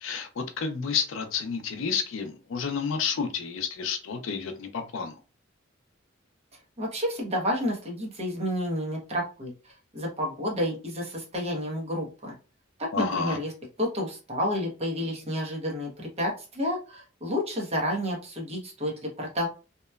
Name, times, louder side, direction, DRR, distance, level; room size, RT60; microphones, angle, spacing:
voice 1, 0.0-5.2 12.9-13.4, left 6 dB, 70° left, 7 dB, 0.4 m, -30 dB
voice 2, 6.8-12.3 12.8-13.5 13.8-19.5, equal, 30° right, -1 dB, 0.8 m, -30 dB
2.8 x 2.1 x 2.2 m, 0.33 s
head